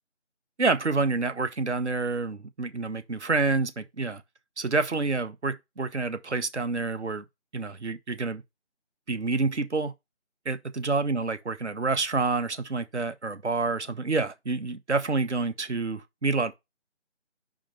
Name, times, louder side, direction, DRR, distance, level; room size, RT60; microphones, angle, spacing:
voice 1, 0.6-4.2 4.6-7.2 7.5-8.4 9.1-9.9 10.4-16.6, right 3 dB, 70° right, 1.1 m, -28 dB
5.3 x 4.9 x 5.6 m
figure-of-eight pair, 165°, 36 cm